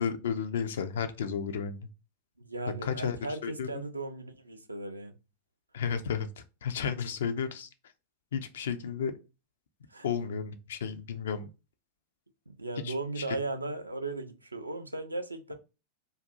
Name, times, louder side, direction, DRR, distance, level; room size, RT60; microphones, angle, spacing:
voice 1, 0.0-1.9 2.8-3.8 5.7-7.7 8.3-9.1 10.0-11.5 12.8-13.4, left 7 dB, 60° left, 0.3 m, -33 dB
voice 2, 2.4-5.2 9.9-10.1 12.5-15.5, right 2 dB, 80° right, 0.3 m, -37 dB
2.5 x 2.3 x 2.5 m
figure-of-eight pair, 90°, 0 cm